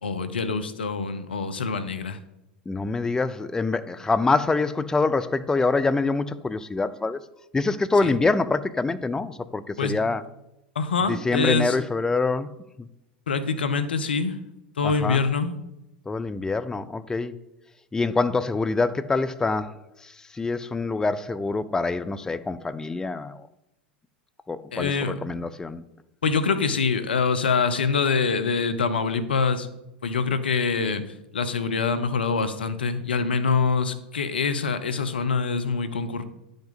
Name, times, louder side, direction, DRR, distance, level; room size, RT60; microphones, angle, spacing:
voice 1, 0.0-2.2 8.0-8.1 9.8-9.9 10.8-11.8 13.3-14.4 14.8-15.5 24.7-25.2 26.2-29.7 30.0-31.0 31.3-36.2, left 5 dB, 80° left, 0.7 m, -25 dB
voice 2, 2.7-7.2 7.5-10.2 11.0-12.5 14.8-15.2 16.1-17.4 17.9-19.8 20.0-23.4 24.5-25.8, left 3 dB, 10° left, 0.4 m, -25 dB
10.0 x 5.2 x 4.0 m
hypercardioid pair, 90°, 5 cm